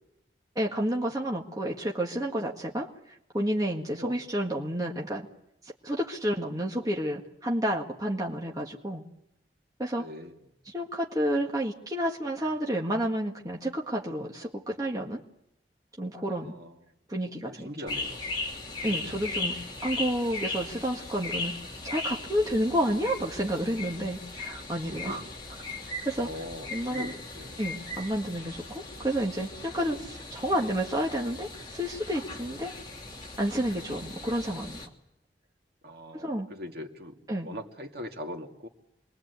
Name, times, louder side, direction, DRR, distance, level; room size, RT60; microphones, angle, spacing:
voice 1, 0.6-2.9 3.3-5.3 5.8-9.0 9.8-10.1 10.7-15.2 16.0-16.5 17.1-17.7 18.8-19.6 19.8-21.5 21.8-25.2 26.1-26.3 26.7-27.1 27.6-32.7 33.4-34.8 36.1-36.5 37.3-37.5, equal, 20° right, -1 dB, 1.8 m, -30 dB
voice 2, 9.9-10.4 16.3-16.8 17.5-18.3 18.8-19.2 24.9-25.3 26.1-27.6 32.5-32.7 35.8-38.7, left 1 dB, 60° right, 2 dB, 2.5 m, -42 dB
sound 1, 17.9-34.9, left 2 dB, 25° left, 2.8 m, -38 dB
27.5 x 21.5 x 8.3 m, 0.83 s
head